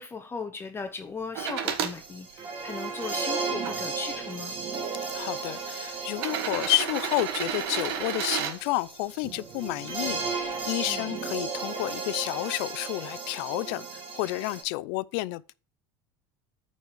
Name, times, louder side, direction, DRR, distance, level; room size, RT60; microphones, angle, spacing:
voice 1, 0.0-4.6 10.9-11.0, left 5 dB, 20° left, 0.8 m, -37 dB
sound 1, 1.3-2.0 2.7-3.7 4.7-4.8 6.1-8.6 10.4-10.5, right 8 dB, 80° right, 1.4 m, -31 dB
sound 2, 1.6-14.6, right 5 dB, 40° right, 2.0 m, -35 dB
voice 2, 5.1-15.5, left 20 dB, 70° left, 0.5 m, -30 dB
9.2 x 4.2 x 5.0 m
supercardioid pair, 135°, 13 cm